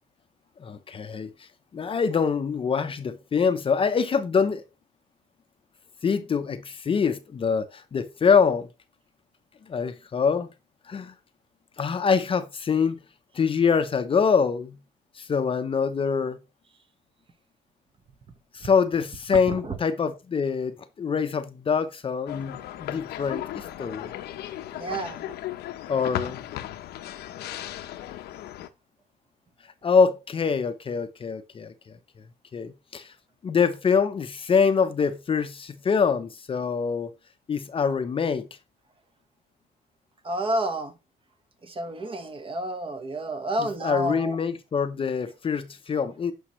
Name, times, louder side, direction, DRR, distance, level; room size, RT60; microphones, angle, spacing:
voice 1, 0.6-4.6 6.0-8.7 9.7-10.5 10.9-11.1 11.8-13.0 13.3-14.8 15.1-16.4 18.5-24.1 25.9-26.4 29.8-31.7 32.5-33.1 33.4-37.1 37.5-38.5 43.6-46.3, left 6 dB, 30° left, 0.7 m, -25 dB
sound 1, 22.3-28.7, left 12 dB, 75° left, 0.8 m, -36 dB
voice 2, 24.7-25.2 40.2-40.9 41.6-44.4, right 1 dB, 30° right, 1.2 m, -30 dB
9.8 x 5.4 x 3.1 m
cardioid pair, 110°, 17 cm